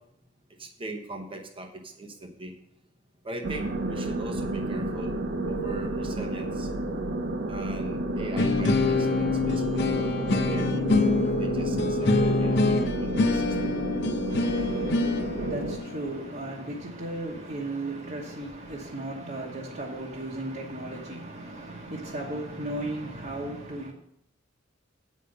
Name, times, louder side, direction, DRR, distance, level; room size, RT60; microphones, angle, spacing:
voice 1, 0.6-2.5 3.2-5.1 5.5-6.7 7.5-11.0 11.4-13.5, right 1 dB, 25° right, 0.9 m, -40 dB
sound 1, 3.4-15.8, right 1 dB, 60° right, 0.8 m, -30 dB
sound 2, 8.4-17.3, left 3 dB, 60° left, 0.7 m, -26 dB
voice 2, 14.3-23.9, right 1 dB, 45° right, 1.2 m, -36 dB
8.3 x 5.4 x 6.5 m
head